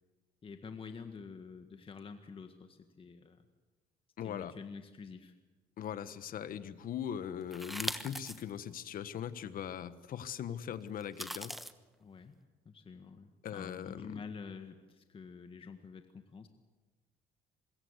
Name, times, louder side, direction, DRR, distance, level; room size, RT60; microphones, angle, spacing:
voice 1, 0.4-3.5 4.2-5.3 12.0-12.3 12.6-16.5, left 5 dB, 30° left, 7 dB, 1.7 m, -48 dB
voice 2, 4.2-4.5 5.8-11.6 13.4-14.2, left 9 dB, 55° left, 13 dB, 1.4 m, -40 dB
sound 1, 7.5-8.4 8.9-9.0 11.0-11.7, equal, ahead, 1.2 m, -39 dB
25.5 x 21.5 x 8.2 m, 1.2 s
cardioid pair, 110°, 17 cm